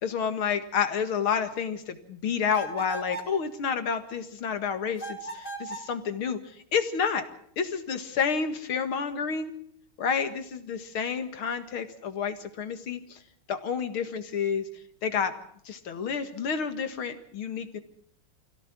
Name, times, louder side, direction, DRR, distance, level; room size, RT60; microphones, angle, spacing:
voice 1, 0.0-7.3 7.6-9.5 10.0-13.2 13.5-14.7 15.0-15.3 15.7-17.8, left 6 dB, 85° left, 9 dB, 2.7 m, -29 dB
sound 1, 2.5-3.4 5.0-5.9, right 2 dB, 50° left, 3.6 m, -37 dB
26.0 x 16.5 x 6.1 m, 0.65 s
omnidirectional pair, 2.2 m